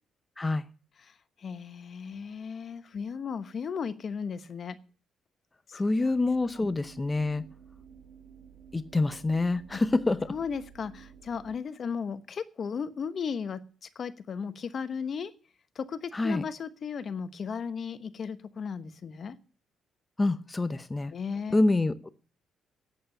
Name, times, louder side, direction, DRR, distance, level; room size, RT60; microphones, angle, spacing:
voice 1, 1.0-4.8 5.7-5.8 6.6-6.7 9.7-9.8 10.3-15.3 15.7-19.4 21.1-21.6, left 6 dB, 50° left, 13 dB, 1.0 m, -36 dB
voice 2, 5.7-7.4 8.7-10.3 16.1-16.4 20.2-21.1 21.5-22.1, left 2 dB, 20° left, 12 dB, 0.7 m, -26 dB
sound 1, 6.1-11.6, right 7 dB, 50° right, 2.5 m, -52 dB
9.0 x 8.6 x 8.8 m, 0.39 s
cardioid pair, 90°, 0 cm